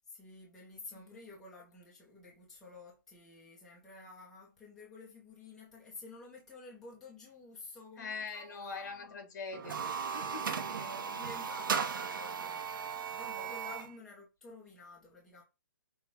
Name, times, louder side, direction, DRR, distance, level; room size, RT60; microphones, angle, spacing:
voice 1, 0.1-9.1 10.5-12.6 13.1-15.4, left 3 dB, 5° left, 0.7 m, -51 dB
voice 2, 8.0-9.8 10.1-10.6 13.3-13.5, left 4 dB, 50° left, 1.6 m, -43 dB
sound 1, 9.5-13.9, right 6 dB, 70° right, 0.8 m, -36 dB
6.2 x 2.3 x 3.5 m
hypercardioid pair, 170°, 12 cm